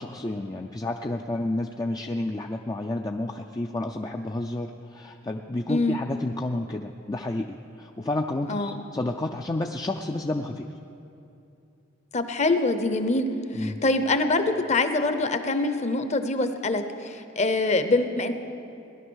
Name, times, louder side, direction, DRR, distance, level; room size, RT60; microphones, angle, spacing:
voice 1, 0.0-10.7 13.5-13.8, left 2 dB, 20° left, 3 dB, 0.4 m, -30 dB
voice 2, 5.7-6.0 8.5-8.8 12.1-13.3 13.5-18.3, left 2 dB, 35° left, 9 dB, 0.8 m, -24 dB
17.5 x 11.0 x 6.3 m, 2.7 s
head